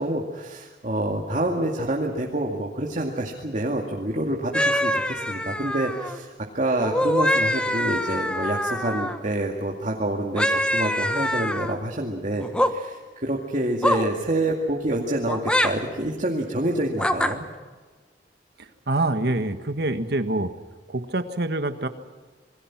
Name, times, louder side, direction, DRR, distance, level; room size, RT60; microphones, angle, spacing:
voice 1, 0.0-17.4, right 1 dB, 45° right, 0 dB, 2.3 m, -27 dB
sound 1, 4.5-6.2 6.8-9.2 10.3-11.7 12.4-12.7 13.8-14.1 15.3-15.7 17.0-17.3, equal, 5° left, 1.3 m, -24 dB
voice 2, 18.6-20.5 20.9-21.9, right 2 dB, 65° right, 9 dB, 1.6 m, -26 dB
27.5 x 22.0 x 6.1 m, 1.4 s
head